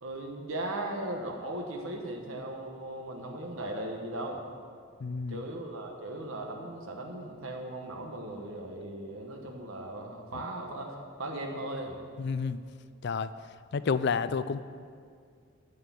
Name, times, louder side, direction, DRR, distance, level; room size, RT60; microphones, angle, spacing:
voice 1, 0.0-4.4 5.3-12.0, right 1 dB, 80° right, 1 dB, 1.2 m, -38 dB
voice 2, 5.0-5.4 12.2-12.6 13.0-13.3 13.7-14.6, left 5 dB, 55° left, 14 dB, 0.4 m, -29 dB
9.3 x 6.6 x 8.4 m, 2.2 s
head